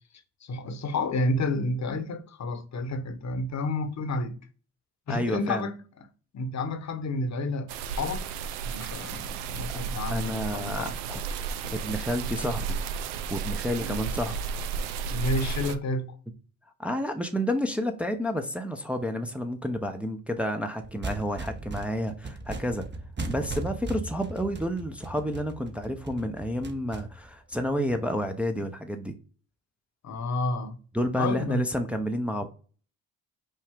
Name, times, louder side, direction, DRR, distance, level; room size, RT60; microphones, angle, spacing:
voice 1, 0.4-4.4 5.1-6.1 6.3-8.3 8.6-11.0 13.7-14.0 15.1-16.2 30.0-30.8 31.1-31.7, left 2 dB, 40° left, 1.0 m, -30 dB
voice 2, 5.1-5.7 9.7-9.8 10.1-12.8 13.3-14.4 16.8-22.9 23.3-29.2 30.9-32.5, equal, 5° right, 0.7 m, -30 dB
sound 1, 7.7-15.8, right 6 dB, 80° right, 0.6 m, -33 dB
sound 2, 20.8-28.2, right 3 dB, 25° right, 0.9 m, -38 dB
5.4 x 2.3 x 3.5 m
hypercardioid pair, 50°, 41 cm